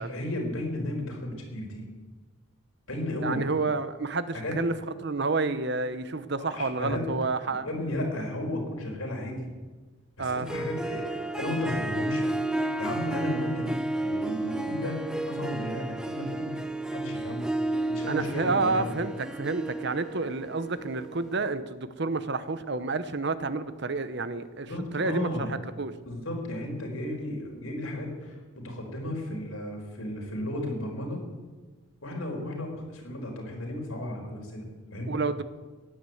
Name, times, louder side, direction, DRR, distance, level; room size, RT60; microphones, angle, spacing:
voice 1, 0.0-1.9 2.9-3.4 4.3-4.6 6.4-7.1 7.6-9.5 10.2-17.5 17.9-18.9 24.7-25.5 26.1-31.2 32.0-35.1, left 1 dB, 75° left, 1 dB, 4.5 m, -34 dB
voice 2, 3.2-4.7 5.0-7.7 10.2-10.6 18.1-25.9 35.1-35.4, right 3 dB, 55° right, 13 dB, 0.9 m, -29 dB
Harp, 10.3-21.5, right 2 dB, 5° right, 0.7 m, -32 dB
16.0 x 10.5 x 7.9 m, 1.3 s
head